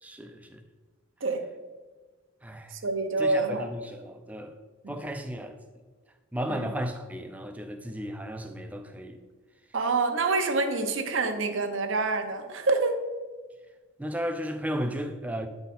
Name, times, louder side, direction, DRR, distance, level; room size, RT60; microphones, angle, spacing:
voice 1, 0.0-0.6 2.4-2.8 3.2-4.5 4.9-5.6 6.3-9.2 14.0-15.5, equal, 5° right, 0.4 m, -34 dB
voice 2, 2.7-3.6 4.8-4.9 6.5-6.7 9.7-13.0, right 3 dB, 70° right, 0.7 m, -27 dB
9.1 x 4.0 x 4.1 m
head